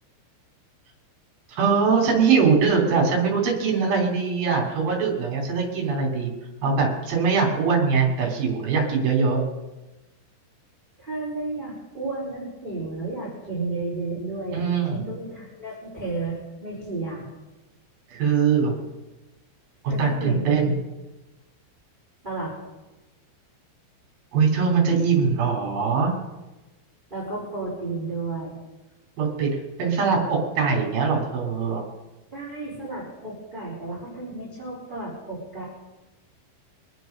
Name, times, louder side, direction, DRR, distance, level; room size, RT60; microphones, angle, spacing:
voice 1, 1.5-6.3 6.6-9.4 14.5-15.0 18.1-18.7 19.8-20.7 24.3-26.1 29.2-31.8, right 5 dB, 50° right, -1 dB, 4.7 m, -22 dB
voice 2, 11.0-14.6 14.9-17.3 19.9-20.5 22.2-22.5 27.1-28.6 32.3-35.6, right 3 dB, 10° right, -6 dB, 4.2 m, -32 dB
26.0 x 9.2 x 5.4 m, 1.1 s
omnidirectional pair, 5.9 m